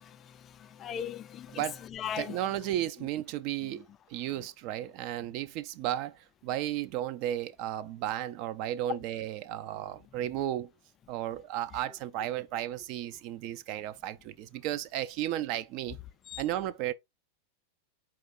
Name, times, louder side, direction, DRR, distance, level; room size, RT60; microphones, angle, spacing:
voice 1, 0.0-1.6 1.9-2.4 16.3-16.4, left 8 dB, 30° left, 0.3 m, -39 dB
voice 2, 1.5-1.8 2.2-10.7 11.1-16.0 16.4-16.9, right 12 dB, 45° right, 0.4 m, -34 dB
4.4 x 2.9 x 3.6 m
figure-of-eight pair, 90°, 0 cm